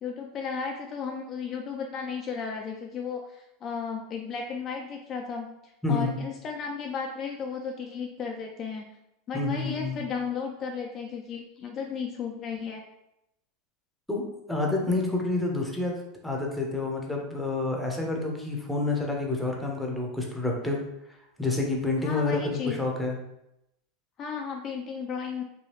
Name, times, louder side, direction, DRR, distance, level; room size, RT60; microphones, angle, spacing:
voice 1, 0.0-8.8 9.3-12.8 22.0-22.9 24.2-25.4, left 6 dB, 40° left, 1 dB, 0.4 m, -34 dB
voice 2, 5.8-6.1 9.3-10.0 14.1-14.2 14.5-20.8 21.4-23.2, left 3 dB, 5° left, -1 dB, 0.7 m, -28 dB
3.1 x 2.3 x 3.0 m, 0.83 s
supercardioid pair, 115°, 0 cm